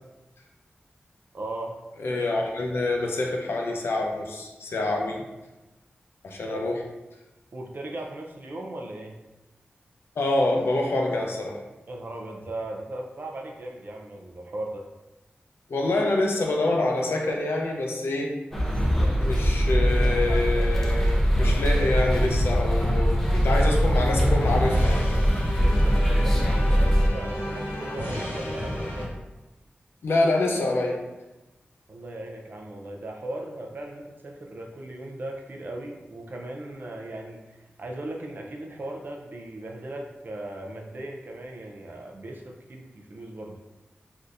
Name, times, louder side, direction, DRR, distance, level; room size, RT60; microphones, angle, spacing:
voice 1, 1.3-1.8 6.5-6.6 7.5-9.2 11.9-14.9 25.6-29.1 31.9-43.6, right 1 dB, 55° right, 1 dB, 0.5 m, -38 dB
voice 2, 2.0-5.2 6.2-6.8 10.2-11.6 15.7-18.3 19.2-25.1 30.0-31.0, left 2 dB, 90° left, 0 dB, 0.5 m, -26 dB
sound 1, 18.5-27.1, equal, 10° left, 0.5 m, -22 dB
sound 2, 19.8-29.1, left 1 dB, 65° left, 0.9 m, -30 dB
3.5 x 2.7 x 2.4 m, 1.0 s
wide cardioid pair, 85°, 4 cm